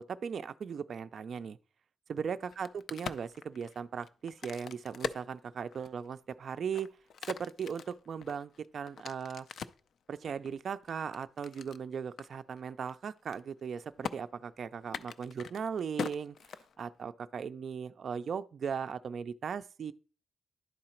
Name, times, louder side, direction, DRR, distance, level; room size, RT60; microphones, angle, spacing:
voice 1, 0.0-1.6 2.1-7.0 7.3-9.5 10.1-16.4 16.8-19.9, right 6 dB, 55° right, 0.3 m, -38 dB
Crack, 2.4-6.1 6.6-9.9 10.5-11.8 12.2-12.3 12.6-12.9 13.2-13.7 14.0-14.2 14.8-17.1, left 6 dB, 65° left, 0.4 m, -42 dB
11.0 x 3.9 x 4.4 m
wide cardioid pair, 130°, 0 cm